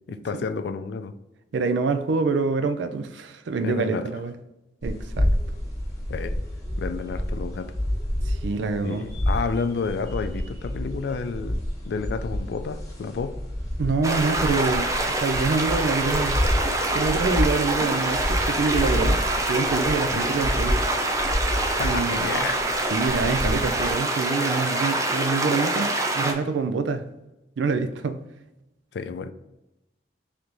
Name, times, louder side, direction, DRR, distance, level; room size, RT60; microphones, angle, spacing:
voice 1, 0.1-1.1 3.6-4.1 6.1-6.4 6.8-7.7 8.8-11.6 11.9-13.4 20.1-20.3 21.8-22.6 28.9-29.3, left 5 dB, 70° left, 0.3 m, -30 dB
voice 2, 1.5-4.3 4.8-5.3 8.3-9.1 13.8-16.4 16.9-19.2 19.5-20.9 21.8-22.5 22.9-27.1 27.6-28.2, right 4 dB, 85° right, 0.4 m, -26 dB
sound 1, 4.8-23.9, left 1 dB, 20° left, 1.0 m, -29 dB
sound 2, 14.0-26.3, right 2 dB, 20° right, 0.3 m, -25 dB
3.3 x 3.1 x 3.8 m
head